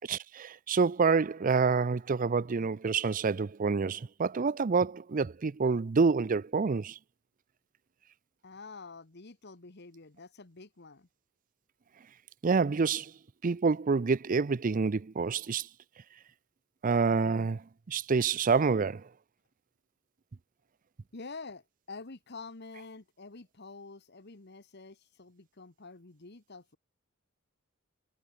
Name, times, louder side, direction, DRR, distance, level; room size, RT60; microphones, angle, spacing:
voice 1, 0.1-7.0 12.4-13.1 13.4-15.7 16.8-17.6 17.9-19.1, right 4 dB, 40° right, 0.5 m, -27 dB
voice 2, 8.4-11.1 21.1-26.8, left 3 dB, 55° left, 1.4 m, -47 dB
head